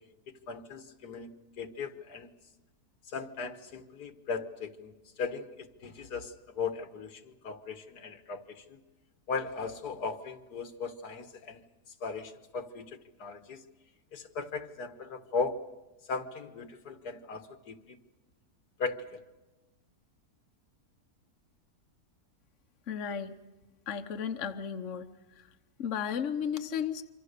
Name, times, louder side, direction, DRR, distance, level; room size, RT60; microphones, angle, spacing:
voice 1, 0.5-2.3 3.1-8.8 9.3-11.6 12.0-12.9 13.2-13.6 14.1-15.6 16.1-18.0 18.8-19.2, left 4 dB, 85° left, 9 dB, 1.9 m, -37 dB
voice 2, 22.9-23.3 23.9-25.1 25.8-27.0, left 7 dB, 55° left, 7 dB, 1.3 m, -34 dB
26.5 x 25.5 x 6.7 m, 1.1 s
omnidirectional pair, 1.6 m